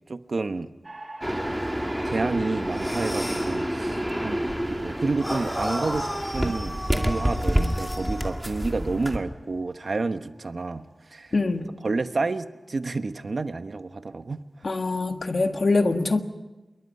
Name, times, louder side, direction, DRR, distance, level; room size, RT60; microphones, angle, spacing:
voice 1, 0.1-0.7 2.0-10.8 11.1-11.3 11.8-14.4, right 3 dB, 65° right, 10 dB, 1.1 m, -30 dB
sound 1, 0.8-11.2, right 2 dB, 40° right, 2.9 m, -45 dB
sound 2, 1.2-9.2, equal, 5° right, 2.4 m, -28 dB
sound 3, 2.7-3.5 5.2-8.4, equal, 10° left, 6.1 m, -34 dB
voice 2, 11.3-11.7 14.6-16.2, left 3 dB, 60° left, 6 dB, 1.6 m, -24 dB
28.0 x 22.0 x 5.6 m, 1.1 s
wide cardioid pair, 85°, 0 cm